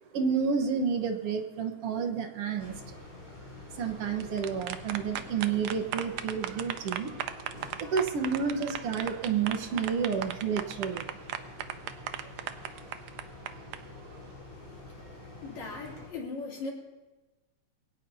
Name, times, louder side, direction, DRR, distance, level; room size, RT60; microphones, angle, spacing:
voice 1, 0.1-2.9 3.8-7.1 7.8-11.2, right 6 dB, 60° right, 5 dB, 1.9 m, -30 dB
sound 1, 2.6-16.1, left 2 dB, 15° left, 6.5 m, -47 dB
sound 2, 4.0-13.8, right 11 dB, 75° right, 1.9 m, -37 dB
voice 2, 15.4-16.7, left 3 dB, 65° left, -3 dB, 4.4 m, -38 dB
22.0 x 17.5 x 2.8 m, 1.1 s
omnidirectional pair, 3.5 m